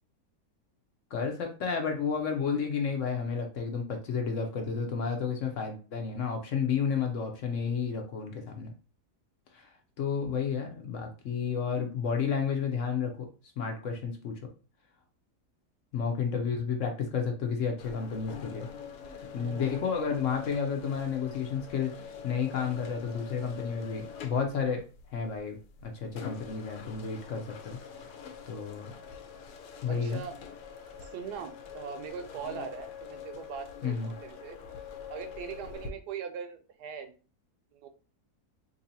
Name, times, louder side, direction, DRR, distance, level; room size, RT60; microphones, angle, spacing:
voice 1, 1.1-8.7 9.5-9.7 10.0-13.1 13.6-14.3 15.9-18.7 19.3-24.8 25.1-25.6 25.8-28.1 28.5-28.9 29.8-30.2 33.8-34.1, left 6 dB, 60° left, 3 dB, 0.9 m, -31 dB
sound 1, 17.8-35.9, left 7 dB, 80° left, 1.2 m, -45 dB
voice 2, 19.3-20.1 29.9-30.4 31.0-34.6 35.1-37.2 37.7-37.9, right 8 dB, 85° right, 7 dB, 1.2 m, -41 dB
3.0 x 2.7 x 4.0 m, 0.36 s
omnidirectional pair, 1.7 m